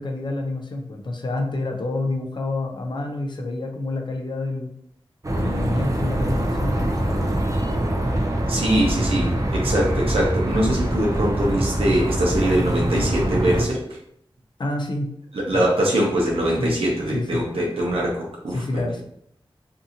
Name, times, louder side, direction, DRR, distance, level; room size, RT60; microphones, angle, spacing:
voice 1, 0.0-4.7 5.3-7.2 14.6-15.1 15.5-15.6 16.6-16.8 17.1-17.4 18.5-19.0, left 2 dB, 55° left, 3 dB, 0.5 m, -28 dB
sound 1, 5.2-13.7, right 1 dB, 35° right, 0.4 m, -24 dB
voice 2, 8.5-13.8 15.4-18.8, right 1 dB, 90° right, -3 dB, 0.6 m, -22 dB
2.6 x 2.5 x 2.7 m, 0.72 s
wide cardioid pair, 55°, 9 cm